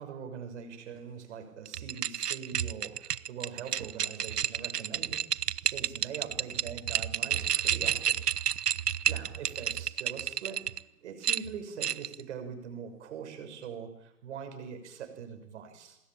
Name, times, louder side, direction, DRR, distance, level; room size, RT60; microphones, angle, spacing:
voice 1, 0.0-5.3 5.6-8.2 9.0-10.6 11.0-16.0, right 7 dB, 45° right, 7 dB, 6.5 m, -42 dB
sound 1, 1.7-10.8 11.2-12.2, right 9 dB, 75° right, 1.0 m, -31 dB
27.5 x 21.0 x 9.1 m, 0.91 s
hypercardioid pair, 150°, 47 cm